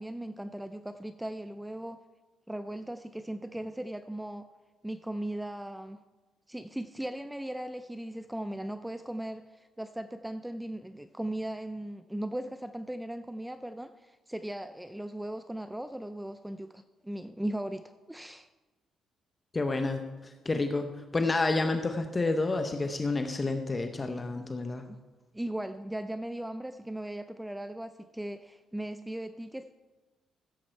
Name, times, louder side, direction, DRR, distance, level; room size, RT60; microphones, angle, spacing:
voice 1, 0.0-2.0 2.5-4.5 4.8-6.0 6.5-18.5 24.8-25.0 25.3-29.7, right 1 dB, 5° right, 11 dB, 0.4 m, -38 dB
voice 2, 19.5-24.8, left 3 dB, 25° left, 6 dB, 0.8 m, -29 dB
15.0 x 7.4 x 4.5 m, 1.2 s
cardioid pair, 90°, 0 cm